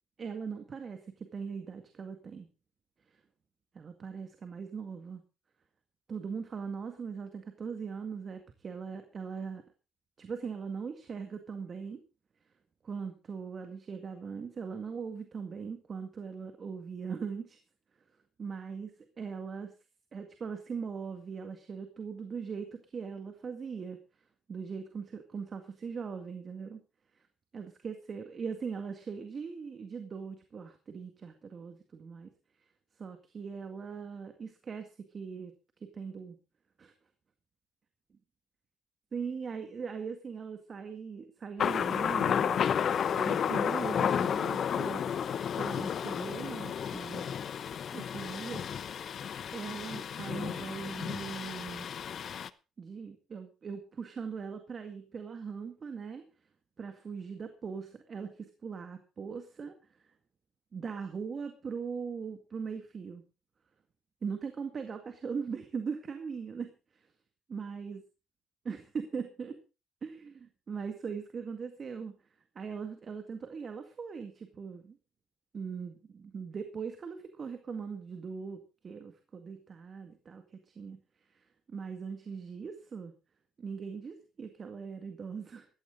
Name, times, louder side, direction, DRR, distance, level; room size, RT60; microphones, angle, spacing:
voice 1, 0.2-2.5 3.7-5.2 6.1-9.6 10.2-12.0 12.8-17.6 18.4-19.7 20.1-24.0 24.5-26.8 27.2-27.3 27.5-32.3 33.0-35.5 35.8-36.4 36.8-36.9 39.1-42.6 43.1-45.1 45.6-47.3 47.9-48.6 49.0-49.1 49.5-51.9 52.8-56.2 56.8-59.7 60.7-63.2 64.2-67.1 67.5-68.0 68.6-69.6 70.0-72.1 72.6-75.0 75.5-81.0 81.3-83.1 83.6-85.7, right 5 dB, 40° right, 7 dB, 1.9 m, -40 dB
Thunder, 41.6-52.5, left 8 dB, 55° left, 0.8 m, -32 dB
15.0 x 13.0 x 3.9 m, 0.31 s
cardioid pair, 90°, 0 cm